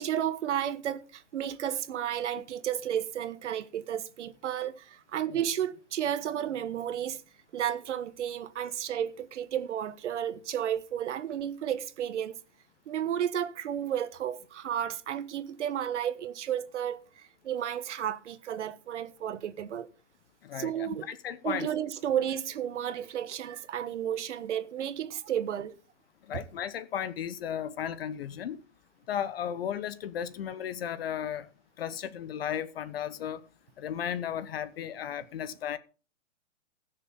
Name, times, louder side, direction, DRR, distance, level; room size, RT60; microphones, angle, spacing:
voice 1, 0.0-7.2 7.5-12.4 12.9-19.9 20.6-21.1 21.4-25.7 26.3-26.4, right 10 dB, 70° right, 1.3 m, -32 dB
voice 2, 20.4-21.7 26.3-28.6 29.1-31.5 31.8-33.4 33.8-35.8, left 9 dB, 50° left, 0.9 m, -35 dB
20.0 x 6.7 x 3.7 m
hypercardioid pair, 165°, 37 cm